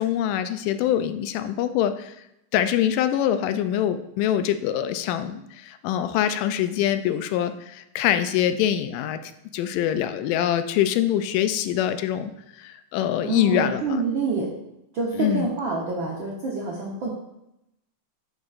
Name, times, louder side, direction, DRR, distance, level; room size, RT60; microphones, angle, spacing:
voice 1, 0.0-2.1 2.5-9.2 9.5-12.3 12.6-14.0 15.2-15.5, left 10 dB, 85° left, 10 dB, 2.2 m, -24 dB
voice 2, 13.2-14.5 14.9-17.1, right 4 dB, 75° right, -3 dB, 1.1 m, -27 dB
10.0 x 6.3 x 2.5 m, 0.84 s
omnidirectional pair, 3.8 m